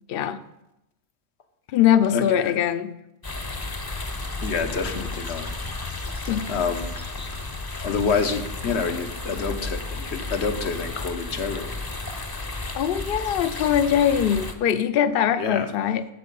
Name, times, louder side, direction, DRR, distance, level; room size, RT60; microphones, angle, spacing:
voice 1, 0.1-0.4 1.7-2.9 6.3-6.5 12.8-16.1, left 9 dB, 65° left, 13 dB, 0.7 m, -22 dB
voice 2, 2.1-2.5 4.4-5.5 6.5-6.9 7.8-11.8 15.4-15.7, left 5 dB, 80° left, 7 dB, 1.2 m, -27 dB
sound 1, 3.2-14.5, left 2 dB, 25° left, 0.7 m, -33 dB
8.6 x 7.3 x 5.3 m, 0.88 s
omnidirectional pair, 1.1 m